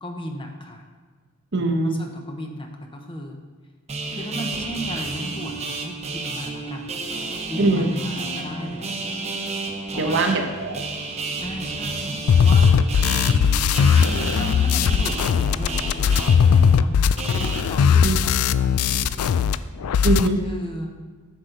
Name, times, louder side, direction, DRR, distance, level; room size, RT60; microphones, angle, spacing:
voice 1, 0.0-0.8 1.8-3.4 4.1-9.2 9.9-10.4 11.4-12.8 14.0-17.0 17.3-19.3 20.4-20.9, equal, 25° left, 3 dB, 0.9 m, -36 dB
voice 2, 1.5-2.0 7.6-7.9 10.0-10.8 18.0-18.2 20.0-20.4, right 2 dB, 55° right, 4 dB, 0.9 m, -21 dB
sound 1, 3.9-17.6, right 3 dB, 30° right, 0.9 m, -31 dB
sound 2, 12.3-19.6 19.8-20.3, left 7 dB, 85° left, 0.3 m, -18 dB
10.0 x 6.5 x 3.9 m, 1.5 s
head